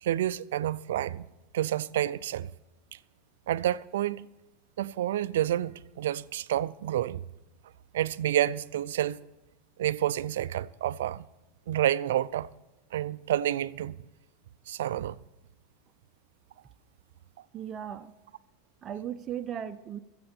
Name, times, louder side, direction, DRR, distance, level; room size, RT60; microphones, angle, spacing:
voice 1, 0.0-1.3 1.5-2.5 2.9-3.0 3.5-4.3 4.8-7.2 7.9-9.2 9.8-11.3 11.7-12.5 12.9-14.0 14.7-15.2, right 12 dB, 85° right, 0.4 m, -29 dB
voice 2, 17.5-18.1 18.8-20.0, right 9 dB, 35° right, 0.7 m, -37 dB
20.5 x 7.7 x 4.4 m
supercardioid pair, 115°, 0 cm